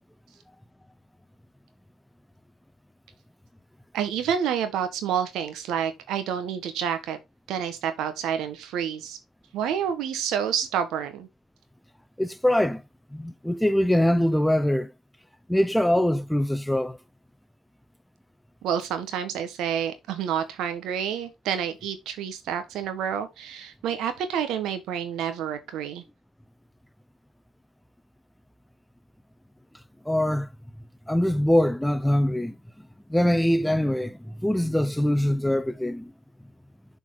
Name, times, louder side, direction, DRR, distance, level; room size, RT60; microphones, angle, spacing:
voice 1, 3.9-7.2 7.5-9.2 9.5-11.3 18.6-26.0, right 8 dB, 75° right, 1.4 m, -29 dB
voice 2, 12.2-12.8 13.1-14.9 15.5-17.0 30.1-30.5 31.1-32.6 33.1-36.1, left 1 dB, 5° left, 0.6 m, -23 dB
7.1 x 4.5 x 3.8 m
supercardioid pair, 70°, 0 cm